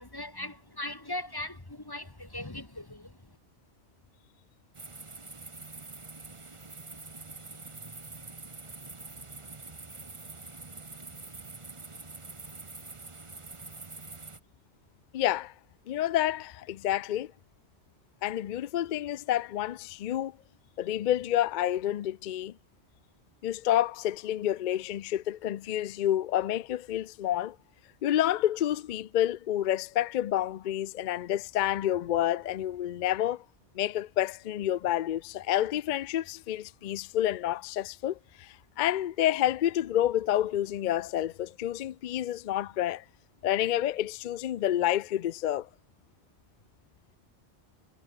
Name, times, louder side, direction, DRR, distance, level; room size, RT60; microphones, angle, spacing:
voice 1, 0.0-3.4, left 1 dB, 20° left, 1.5 m, -39 dB
sound 1, 4.7-14.4, right 3 dB, 25° right, 1.3 m, -45 dB
voice 2, 15.1-15.5 15.9-17.3 18.2-20.3 20.8-22.6 23.4-27.6 28.0-33.4 33.7-43.0 43.4-45.7, left 12 dB, 60° left, 0.5 m, -29 dB
omnidirectional pair, 1.2 m